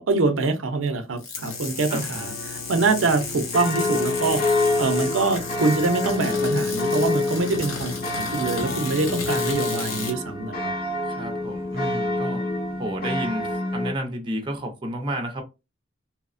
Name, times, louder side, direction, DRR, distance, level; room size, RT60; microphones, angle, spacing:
voice 1, 0.0-4.4 4.8-10.7, right 3 dB, 75° right, 0.5 m, -24 dB
sound 1, 1.2-10.2, left 4 dB, 80° left, 0.9 m, -33 dB
sound 2, 2.1-13.9, left 2 dB, 45° left, 0.6 m, -27 dB
voice 2, 11.1-12.4 12.8-15.4, equal, 25° right, 0.5 m, -31 dB
2.9 x 2.0 x 2.4 m
head